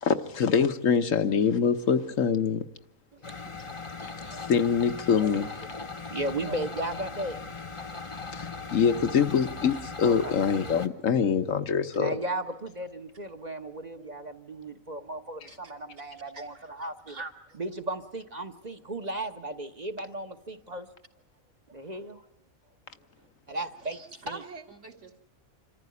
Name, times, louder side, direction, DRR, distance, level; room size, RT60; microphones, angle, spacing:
voice 1, 0.0-2.6 4.5-5.5 8.3-12.1, left 6 dB, 70° left, 8 dB, 1.4 m, -24 dB
sound 1, 3.2-10.9, left 4 dB, 25° left, 0.9 m, -39 dB
voice 2, 4.0-4.5 5.2-5.7 6.1-7.4 8.4-8.8 10.0-10.4 11.9-17.2 17.5-20.9 21.7-22.2 23.5-24.4, right 1 dB, 30° right, 6 dB, 1.2 m, -36 dB
voice 3, 23.9-25.2, right 2 dB, 55° right, 2 dB, 2.4 m, -43 dB
27.0 x 14.5 x 9.6 m, 0.82 s
omnidirectional pair, 1.4 m